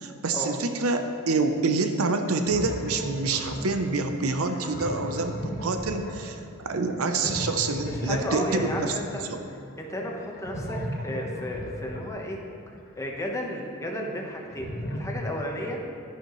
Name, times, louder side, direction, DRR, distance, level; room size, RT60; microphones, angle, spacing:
voice 1, 0.0-8.9 9.2-9.4, right 3 dB, 80° right, 7 dB, 0.7 m, -27 dB
sound 1, 2.3-12.9 14.2-15.1, equal, 45° left, 1.3 m, -36 dB
voice 2, 7.9-12.4 12.7-15.8, left 1 dB, 15° left, 0 dB, 1.1 m, -34 dB
12.0 x 10.0 x 3.1 m, 2.6 s
head